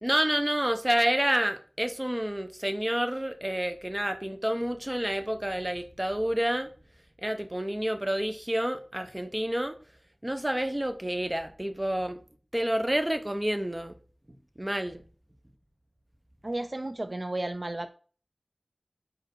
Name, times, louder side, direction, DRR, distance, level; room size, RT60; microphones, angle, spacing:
voice 1, 0.0-6.7 7.2-9.8 10.2-12.2 12.5-14.0 14.6-15.0, right 1 dB, 20° right, 0.7 m, -29 dB
voice 2, 16.4-17.9, right 2 dB, 50° right, 0.4 m, -33 dB
5.0 x 4.5 x 4.6 m
wide cardioid pair, 50°, 0 cm